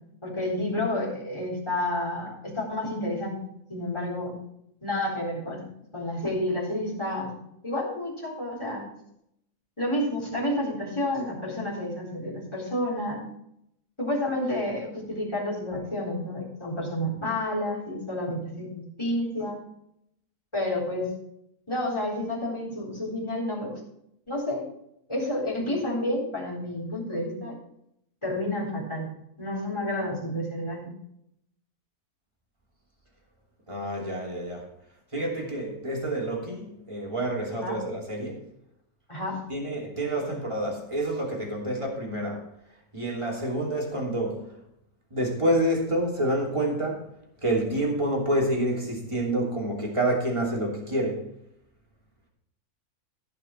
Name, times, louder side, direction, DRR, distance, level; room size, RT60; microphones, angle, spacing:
voice 1, 0.2-4.3 4.8-8.8 9.8-13.2 14.0-19.6 20.5-21.1 21.7-23.8 24.3-24.7 25.1-27.6 28.2-29.1 29.4-30.9 37.6-37.8 39.1-39.4, left 1 dB, 15° left, 4.1 m, -30 dB
voice 2, 33.7-34.6 35.1-38.4 39.5-42.4 42.9-44.3 45.1-47.0 47.4-51.2, right 1 dB, 20° right, 3.1 m, -28 dB
16.0 x 5.9 x 4.5 m
omnidirectional pair, 1.6 m